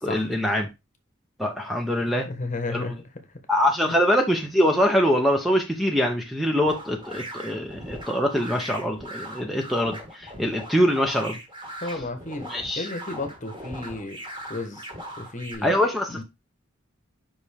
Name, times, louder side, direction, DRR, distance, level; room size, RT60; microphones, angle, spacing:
voice 1, 0.0-0.7 1.4-2.3 2.7-2.9 3.5-11.4 12.5-12.9 15.6-16.2, equal, ahead, 0.7 m, -23 dB
voice 2, 2.2-3.2 3.8-4.0 11.8-12.5 12.8-14.2 14.5-14.9 15.2-15.7 16.1-16.2, left 2 dB, 40° left, 1.1 m, -33 dB
sound 1, 6.6-15.5, right 1 dB, 25° right, 2.0 m, -39 dB
5.4 x 5.2 x 3.4 m
head